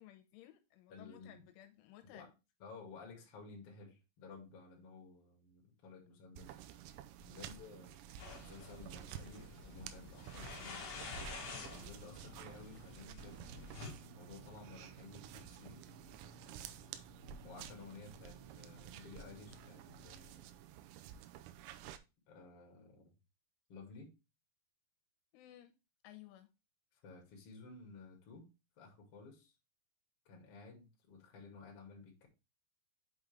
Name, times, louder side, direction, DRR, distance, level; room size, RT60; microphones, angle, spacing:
voice 1, 0.0-2.3 7.2-7.5 25.3-25.7 26.0-26.5, left 13 dB, 85° left, 3.1 m, -57 dB
voice 2, 0.9-1.4 2.1-2.3 2.6-6.6 7.3-10.9 11.7-15.9 17.4-20.6 22.3-23.2 23.7-24.1 26.9-28.5 28.8-29.5 30.3-32.3, left 4 dB, 45° left, 2.0 m, -55 dB
sound 1, 6.4-22.0, right 10 dB, 85° right, 3.3 m, -52 dB
sound 2, 8.2-13.9, left 4 dB, 60° left, 1.6 m, -49 dB
sound 3, 12.2-20.2, right 2 dB, 60° right, 2.9 m, -60 dB
8.0 x 5.2 x 3.4 m
omnidirectional pair, 5.8 m